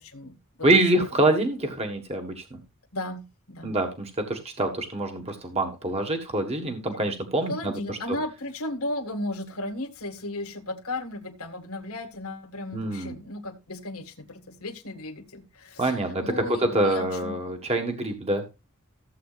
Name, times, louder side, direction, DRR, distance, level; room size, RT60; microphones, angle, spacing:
voice 1, 0.0-0.7 2.9-3.7 7.4-17.7, left 1 dB, 80° left, 4 dB, 1.8 m, -35 dB
voice 2, 0.6-2.6 3.6-8.0 12.7-13.2 15.8-18.4, right 2 dB, 30° right, 5 dB, 1.6 m, -25 dB
15.0 x 7.9 x 2.5 m, 0.25 s
head